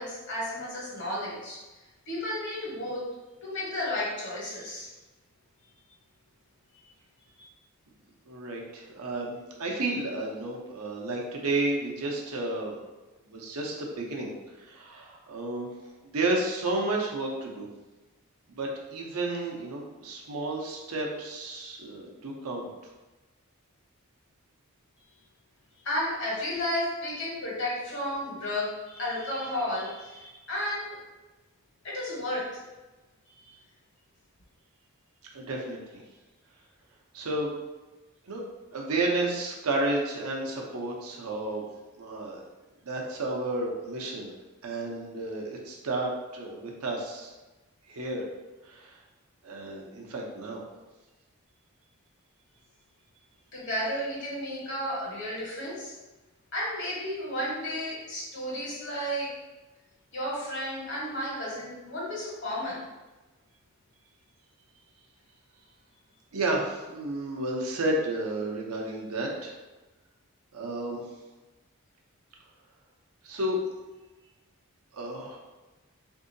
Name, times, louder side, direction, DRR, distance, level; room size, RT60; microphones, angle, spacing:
voice 1, 0.0-1.6 2.1-3.0 3.4-4.9 7.4-7.5 25.8-31.0 31.8-32.5 53.5-55.9 56.5-59.3 60.1-62.8, left 1 dB, 55° left, -5 dB, 1.2 m, -32 dB
voice 2, 8.3-12.8 13.3-15.7 16.0-17.7 18.5-22.7 35.3-36.0 37.1-37.5 38.3-38.4 38.7-41.6 42.0-42.4 42.8-44.3 44.6-47.3 47.9-48.3 48.6-49.0 49.4-50.6 66.3-69.6 70.5-71.0 73.2-73.6 74.9-75.4, right 2 dB, 75° right, -1 dB, 0.7 m, -32 dB
3.6 x 2.7 x 2.6 m, 1.1 s
head